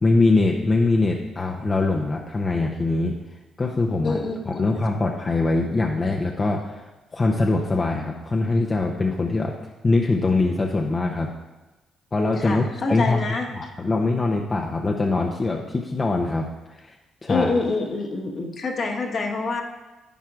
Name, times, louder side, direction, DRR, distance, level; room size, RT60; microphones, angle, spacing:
voice 1, 0.0-3.2 3.6-6.8 7.1-9.5 9.8-11.3 12.1-12.6 12.9-13.2 13.5-16.9 17.2-17.5, left 3 dB, 30° left, 0 dB, 0.7 m, -23 dB
voice 2, 4.0-4.8 12.4-13.5 17.3-19.6, left 3 dB, 50° left, 2 dB, 1.3 m, -26 dB
10.5 x 9.3 x 2.5 m, 1.1 s
cardioid pair, 90°, 0 cm